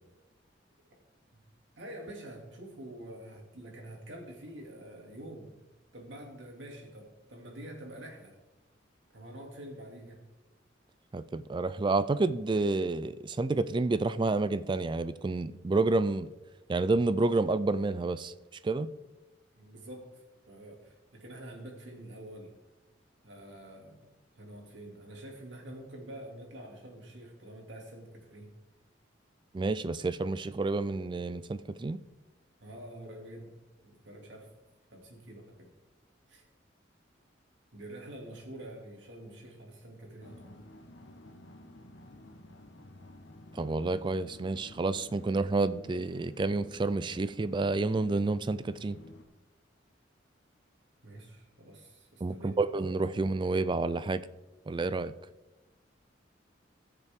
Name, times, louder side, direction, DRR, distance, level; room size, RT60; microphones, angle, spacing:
voice 1, 1.8-5.5 5.9-8.3 9.1-10.2 19.6-22.5 23.2-24.0 24.4-28.5 32.6-33.5 33.8-34.5 34.9-35.7 36.3-36.4 37.7-40.6 51.0-52.6, right 1 dB, 75° right, 0 dB, 2.7 m, -47 dB
voice 2, 11.1-16.3 16.7-18.3 18.6-18.9 29.5-32.0 43.5-49.0 52.2-54.2 54.7-55.1, right 3 dB, 25° right, 15 dB, 0.3 m, -29 dB
sound 1, 40.2-49.2, left 1 dB, 85° left, 1.2 m, -52 dB
20.0 x 6.7 x 3.7 m, 1.1 s
head